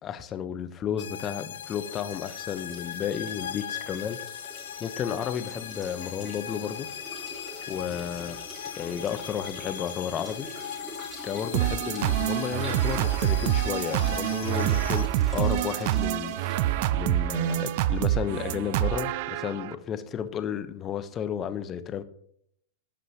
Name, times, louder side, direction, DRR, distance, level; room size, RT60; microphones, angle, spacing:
voice 1, 0.0-4.2 4.8-6.9 7.7-8.4 8.8-10.5 11.2-16.4 16.9-22.0, left 8 dB, 30° left, 10 dB, 0.9 m, -32 dB
sound 1, 1.0-15.1, left 9 dB, 75° left, 0.5 m, -39 dB
sound 2, 1.6-16.7, right 1 dB, 15° right, 3.5 m, -45 dB
sound 3, 11.5-19.8, right 13 dB, 55° right, 0.4 m, -26 dB
15.5 x 5.3 x 3.0 m, 0.68 s
hypercardioid pair, 115°, 0 cm